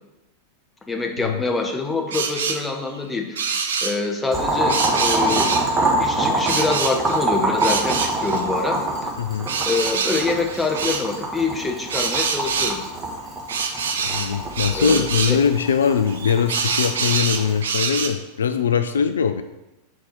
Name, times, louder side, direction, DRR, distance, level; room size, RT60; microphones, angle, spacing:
voice 1, 0.9-3.5 3.8-5.5 6.0-9.1 9.7-12.8 14.7-15.4, left 3 dB, 10° left, 2 dB, 0.9 m, -25 dB
sound 1, 2.1-2.6 3.4-4.0 4.7-5.9 6.4-7.2 7.6-8.4 9.5-11.1 11.9-12.8 13.5-15.4 16.1-18.1, right 5 dB, 65° right, 0.6 m, -25 dB
Boiling, 4.3-17.6, right 1 dB, 20° right, 1.5 m, -25 dB
voice 2, 9.2-9.5 14.0-19.4, left 7 dB, 65° left, 9 dB, 0.3 m, -21 dB
4.7 x 4.3 x 5.3 m, 0.96 s
figure-of-eight pair, 90°, 0 cm